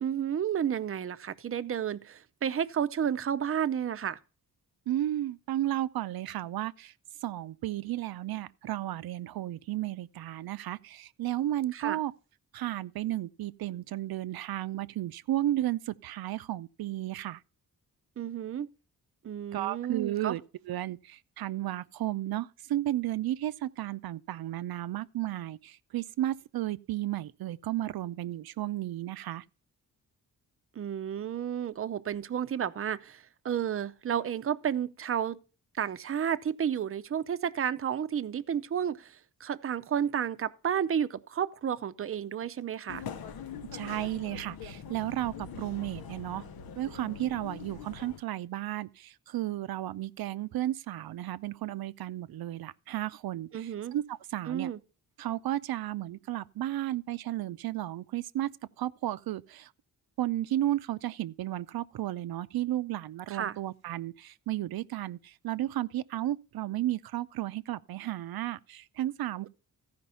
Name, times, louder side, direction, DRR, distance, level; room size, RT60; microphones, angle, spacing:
voice 1, 0.0-4.2 11.7-12.0 18.2-18.7 19.2-20.4 30.8-35.4 35.7-43.0 53.5-53.9 54.5-54.8 63.3-63.6, right 9 dB, 40° right, 0.6 m, -32 dB
voice 2, 4.9-6.9 7.2-12.1 12.5-17.4 19.5-20.4 20.7-29.4 43.7-46.4 46.8-54.7 55.2-59.7 60.2-69.5, right 14 dB, 85° right, 0.6 m, -33 dB
sound 1, 42.9-48.2, left 6 dB, 85° left, 1.0 m, -43 dB
14.5 x 5.2 x 5.5 m
wide cardioid pair, 125°, 35 cm